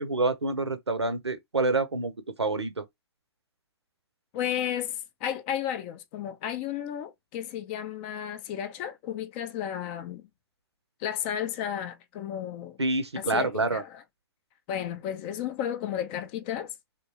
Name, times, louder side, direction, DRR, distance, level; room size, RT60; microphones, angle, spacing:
voice 1, 0.0-2.1 2.4-2.8 12.8-13.8, right 2 dB, 80° right, 0.7 m, -27 dB
voice 2, 4.3-10.2 11.0-12.8 13.2-13.8 14.7-16.7, left 10 dB, 25° left, 0.4 m, -33 dB
2.9 x 2.2 x 2.8 m
figure-of-eight pair, 120°, 14 cm